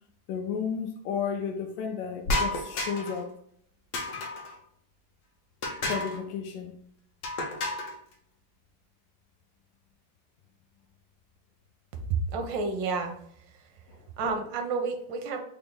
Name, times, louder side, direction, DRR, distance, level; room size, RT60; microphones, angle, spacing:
voice 1, 0.3-3.3 5.9-6.7 13.9-14.0, left 6 dB, 85° left, 2 dB, 1.3 m, -33 dB
sound 1, 2.2-3.2 3.9-4.6 5.6-6.2 7.2-8.0, left 2 dB, 70° left, 0.7 m, -31 dB
voice 2, 12.1-13.1 13.5-13.6 14.2-15.4, right 4 dB, 85° right, 5 dB, 1.3 m, -30 dB
4.1 x 2.0 x 3.6 m, 0.66 s
omnidirectional pair, 2.0 m